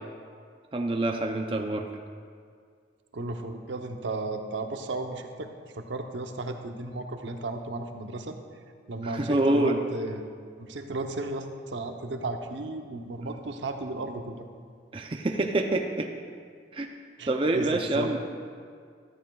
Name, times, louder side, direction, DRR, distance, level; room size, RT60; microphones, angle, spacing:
voice 1, 0.7-1.9 9.0-9.8 14.9-16.1 16.7-16.9 17.3-18.2, right 2 dB, 30° right, 3 dB, 0.5 m, -26 dB
voice 2, 3.1-8.4 8.9-10.3 10.6-14.4 17.2-18.1, right 2 dB, 80° right, 5 dB, 0.8 m, -34 dB
13.5 x 13.0 x 2.3 m, 2.1 s
head